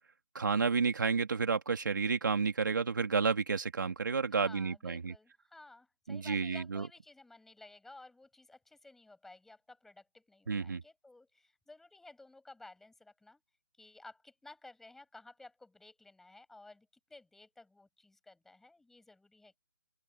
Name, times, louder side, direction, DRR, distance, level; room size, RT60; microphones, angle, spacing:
voice 1, 0.3-5.1 6.1-6.9 10.5-10.8, right 5 dB, 70° right, 2.8 m, -31 dB
voice 2, 4.3-13.4 13.8-19.6, left 2 dB, 5° left, 6.3 m, -55 dB
open air
hypercardioid pair, 155°, 11 cm